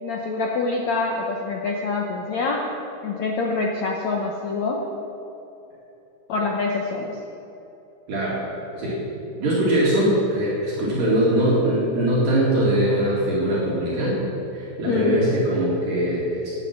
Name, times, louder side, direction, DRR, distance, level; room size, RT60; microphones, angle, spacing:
voice 1, 0.0-2.7 3.0-4.8 6.3-7.2 14.9-15.2, left 3 dB, 75° left, 0 dB, 1.6 m, -25 dB
voice 2, 8.1-8.4 8.7-9.0 9.4-14.2 14.5-16.5, right 1 dB, 60° right, -7 dB, 3.9 m, -22 dB
16.5 x 9.8 x 6.0 m, 2.9 s
omnidirectional pair, 4.6 m